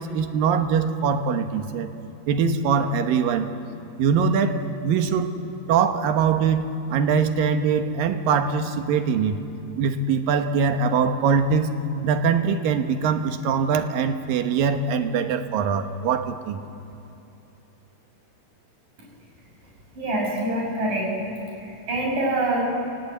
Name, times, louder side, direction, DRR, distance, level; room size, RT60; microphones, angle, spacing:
voice 1, 0.0-1.9 2.3-3.5 4.0-5.3 5.7-6.6 6.9-9.4 9.8-11.7 12.0-16.6, right 6 dB, 90° right, 7 dB, 3.0 m, -22 dB
voice 2, 19.9-21.3 21.5-22.6, right 1 dB, 70° right, -1 dB, 8.4 m, -25 dB
27.5 x 20.0 x 8.5 m, 2.9 s
omnidirectional pair, 3.9 m